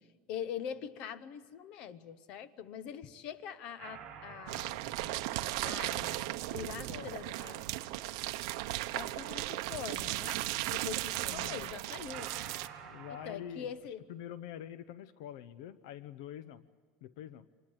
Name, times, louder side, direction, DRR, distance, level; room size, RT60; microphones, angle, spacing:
voice 1, 0.3-4.8 5.6-7.6 8.9-12.3 13.2-14.0, left 9 dB, 40° left, 14 dB, 0.9 m, -43 dB
sound 1, 3.8-7.1 12.1-13.3, right 8 dB, 30° right, 7.6 m, -50 dB
sound 2, 4.5-12.7, right 17 dB, 60° right, 0.9 m, -36 dB
voice 2, 6.6-7.2 11.2-11.7 12.8-13.7 14.1-16.7 17.0-17.5, left 10 dB, 65° left, 15 dB, 0.7 m, -46 dB
26.0 x 21.0 x 8.0 m, 1.5 s
cardioid pair, 180°, 3 cm